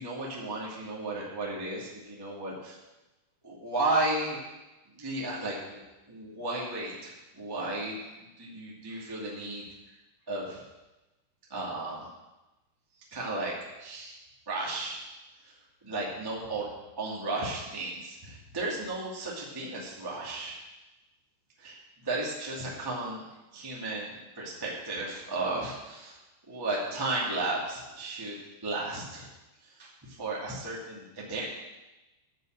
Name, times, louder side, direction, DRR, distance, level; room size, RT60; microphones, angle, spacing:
voice 1, 0.0-2.8 3.4-4.4 4.9-7.9 8.2-9.6 10.3-10.6 11.5-12.1 13.1-14.2 14.4-15.0 15.4-15.5 15.8-16.7 17.0-20.6 21.6-26.2 26.5-28.4 28.6-29.3 29.6-31.5, right 2 dB, 10° right, -5 dB, 1.3 m, -34 dB
12.0 x 5.5 x 7.8 m, 1.0 s
omnidirectional pair, 4.7 m